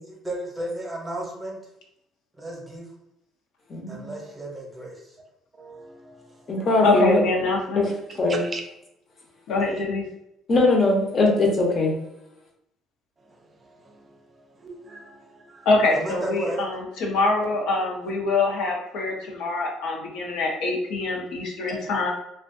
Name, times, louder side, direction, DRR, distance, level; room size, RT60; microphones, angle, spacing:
voice 1, 0.2-1.6 2.4-2.9 3.9-5.1 15.9-16.7, right 1 dB, 15° right, -1 dB, 0.8 m, -33 dB
voice 2, 3.7-4.1 6.5-7.2 7.8-7.9 8.2-8.4 10.5-11.9, left 2 dB, 40° left, 0 dB, 0.7 m, -20 dB
voice 3, 5.6-6.2 6.5-6.6 8.4-8.6 14.6-15.7 21.7-21.9, right 2 dB, 30° right, 2 dB, 0.4 m, -40 dB
voice 4, 6.8-7.9 9.5-10.1 15.7-22.1, left 3 dB, 75° left, -1 dB, 0.7 m, -24 dB
2.5 x 2.2 x 2.5 m, 0.82 s
cardioid pair, 105°, 0 cm